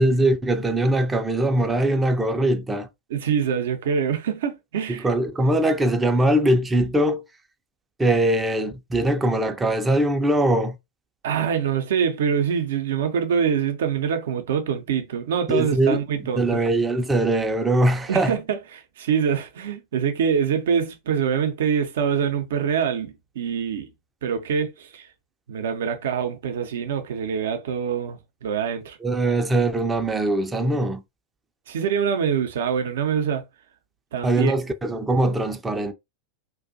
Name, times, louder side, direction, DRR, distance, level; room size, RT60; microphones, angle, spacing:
voice 1, 0.0-2.9 4.9-7.2 8.0-10.8 15.5-16.0 16.4-18.3 29.0-31.0 34.2-35.9, right 1 dB, 10° right, 0.4 m, -21 dB
voice 2, 3.1-5.1 11.2-16.6 18.1-23.9 24.2-25.1 25.5-29.0 31.7-33.4 34.1-34.6, right 7 dB, 60° right, 0.5 m, -25 dB
2.4 x 2.2 x 2.5 m
figure-of-eight pair, 90°, 0 cm